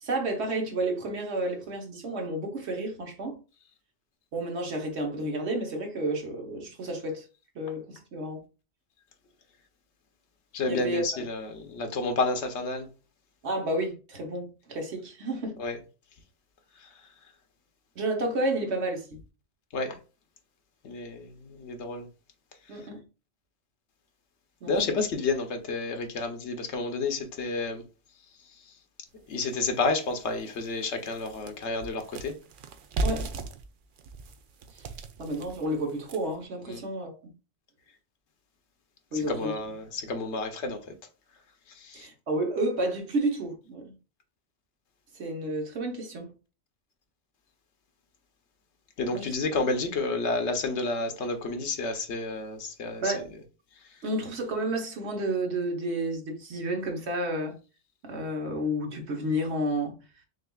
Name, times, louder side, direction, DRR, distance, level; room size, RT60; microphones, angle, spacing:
voice 1, 0.0-3.4 4.3-7.2 7.5-8.4 10.7-11.2 13.4-15.6 18.0-19.2 22.7-23.0 24.6-25.1 33.0-33.3 34.7-34.9 35.2-37.3 39.1-39.6 41.9-43.9 45.1-46.4 49.1-49.3 53.0-53.2 54.0-57.6 58.0-60.0, right 1 dB, 80° right, 1.3 m, -31 dB
voice 2, 10.5-12.9 15.6-15.8 19.7-19.9 20.8-22.1 24.7-27.8 29.3-32.4 36.7-36.8 39.1-40.8 41.7-42.1 49.0-53.1, left 3 dB, 90° left, 1.1 m, -30 dB
sound 1, 29.3-29.4 29.9-30.0 30.4-36.4, right 2 dB, 60° right, 0.6 m, -36 dB
6.2 x 2.4 x 2.3 m
omnidirectional pair, 1.1 m